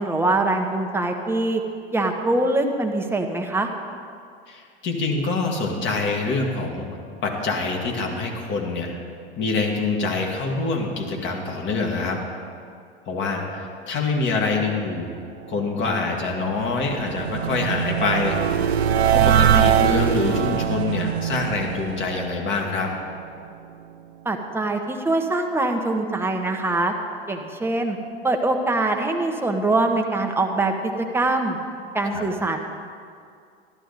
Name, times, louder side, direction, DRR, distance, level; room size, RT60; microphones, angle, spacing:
voice 1, 0.0-1.6 1.9-3.7 24.2-26.9 27.3-28.0 28.2-31.6 31.9-32.6, right 2 dB, 5° right, 3 dB, 1.1 m, -23 dB
voice 2, 4.5-6.9 7.2-8.9 9.4-12.2 13.1-15.1 15.5-18.4 19.1-22.9 32.1-32.2, left 3 dB, 35° left, 1 dB, 2.1 m, -25 dB
sound 1, 16.0-23.1, right 9 dB, 90° right, 0.6 m, -22 dB
13.0 x 11.5 x 4.1 m, 2.3 s
hypercardioid pair, 95°, 31 cm